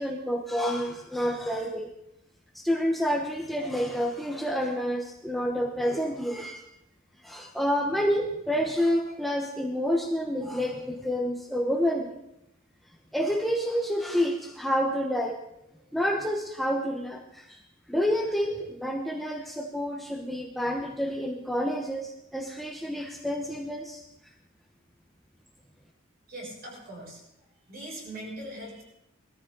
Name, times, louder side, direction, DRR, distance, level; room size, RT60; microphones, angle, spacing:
voice 1, 0.0-1.9 2.5-6.6 7.2-12.2 13.1-15.4 15.9-17.6 17.9-24.0, equal, ahead, 1 dB, 0.9 m, -28 dB
voice 2, 26.3-27.2 27.7-28.8, right 1 dB, 50° right, -3 dB, 6.7 m, -40 dB
19.5 x 14.0 x 3.9 m, 0.84 s
head